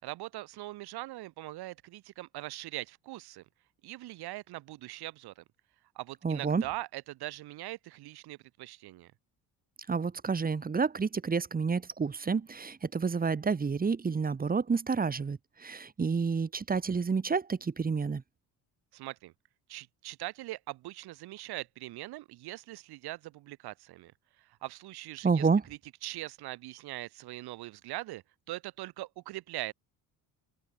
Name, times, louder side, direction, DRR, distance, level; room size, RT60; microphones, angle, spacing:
voice 1, 0.0-3.4 3.8-5.4 6.0-9.1 18.9-19.3 19.7-24.1 24.6-25.5 26.0-29.7, right 17 dB, 80° right, 5.5 m, -41 dB
voice 2, 6.2-6.6 9.9-18.2 25.2-25.6, right 5 dB, 25° right, 2.1 m, -29 dB
cardioid pair, 130°, 38 cm